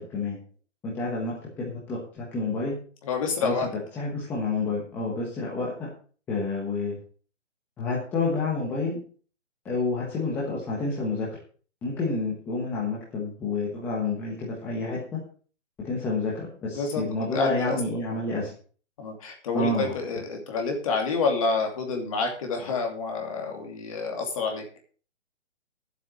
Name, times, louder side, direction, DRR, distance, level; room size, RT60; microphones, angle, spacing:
voice 1, 0.8-2.8 3.4-5.9 6.3-7.0 7.8-9.0 9.6-11.3 11.8-15.2 15.8-18.5 19.5-19.9, left 3 dB, 5° left, -5 dB, 1.3 m, -29 dB
voice 2, 3.0-3.7 16.7-17.1 17.3-17.8 19.0-24.6, left 4 dB, 30° left, 3 dB, 2.7 m, -28 dB
11.0 x 8.0 x 6.2 m, 0.42 s
hypercardioid pair, 170°, 36 cm